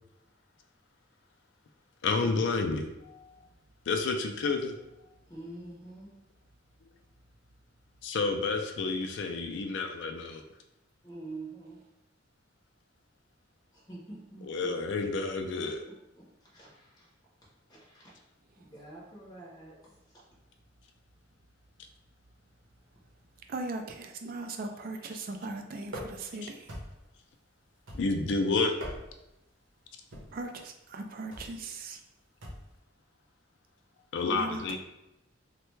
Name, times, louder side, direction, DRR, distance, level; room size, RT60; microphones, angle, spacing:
voice 1, 2.0-3.3 3.9-4.7 8.0-10.4 14.4-15.8 26.4-26.5 27.9-28.7 34.1-34.8, left 3 dB, 65° left, 5 dB, 0.4 m, -30 dB
voice 2, 5.3-6.1 11.0-11.8 13.7-14.8 15.8-17.1 17.7-18.2 18.6-20.0, right 2 dB, 20° left, -6 dB, 0.7 m, -46 dB
voice 3, 23.5-26.7 30.3-32.0 34.3-34.6, right 2 dB, 50° right, 5 dB, 0.4 m, -38 dB
sound 1, 25.9-26.3 26.7-27.1 27.9-28.3 28.7-29.3 30.1-30.4 31.3-31.6 32.4-32.7, equal, 85° right, 0.8 m, -42 dB
3.3 x 2.2 x 3.1 m, 0.91 s
head